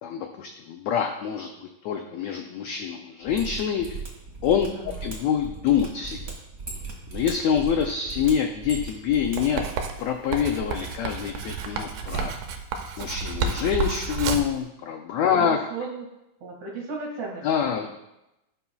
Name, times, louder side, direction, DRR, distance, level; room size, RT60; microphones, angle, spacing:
voice 1, 0.0-3.9 4.4-6.2 7.1-9.6 10.0-12.3 13.0-15.6 17.4-17.9, left 8 dB, 85° left, 4 dB, 1.5 m, -26 dB
Mechanisms, 3.2-9.4 9.6-9.7, right 4 dB, 30° right, 1.7 m, -37 dB
voice 2, 4.8-5.1 15.4-16.0 16.4-17.5 17.8-17.9, right 4 dB, 60° right, -1 dB, 3.1 m, -35 dB
Writing, 9.4-14.6, right 5 dB, 75° right, 2.1 m, -30 dB
16.5 x 5.6 x 2.3 m, 0.90 s
omnidirectional pair, 3.8 m